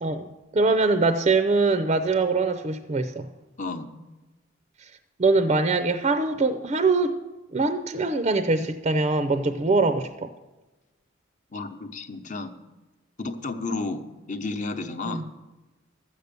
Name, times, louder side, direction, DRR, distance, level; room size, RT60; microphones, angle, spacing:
voice 1, 0.5-3.3 4.8-4.9 5.2-7.2 7.5-10.3 15.1-15.3, right 3 dB, 30° right, 10 dB, 0.5 m, -23 dB
voice 2, 3.6-3.9 11.5-12.5 13.2-15.2, left 3 dB, 40° left, 7 dB, 0.9 m, -32 dB
12.5 x 8.1 x 6.8 m, 1.1 s
head